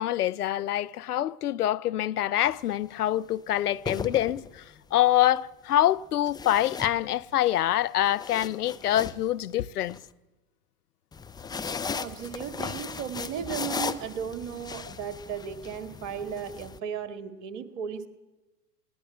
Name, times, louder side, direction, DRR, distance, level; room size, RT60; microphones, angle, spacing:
voice 1, 0.0-4.6 4.9-10.0, left 13 dB, 70° left, 0.7 m, -25 dB
sound 1, 2.4-2.7 3.6-4.8 6.3-7.5 7.9-10.0 11.1-16.8, left 5 dB, 10° left, 0.7 m, -37 dB
voice 2, 12.0-18.1, right 7 dB, 50° right, 2.2 m, -35 dB
20.0 x 18.5 x 8.7 m
figure-of-eight pair, 95°, 47 cm